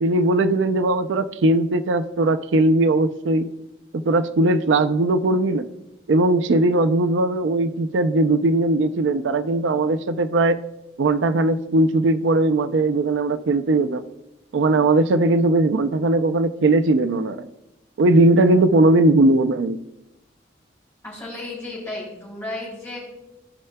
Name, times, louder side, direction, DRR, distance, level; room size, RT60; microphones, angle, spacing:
voice 1, 0.0-3.5 3.9-5.7 6.1-10.6 11.0-14.0 14.5-17.5 18.0-19.8, right 2 dB, 85° right, 12 dB, 0.4 m, -19 dB
voice 2, 21.0-23.0, left 2 dB, 10° left, -5 dB, 3.2 m, -33 dB
16.0 x 5.5 x 2.2 m, 0.91 s
head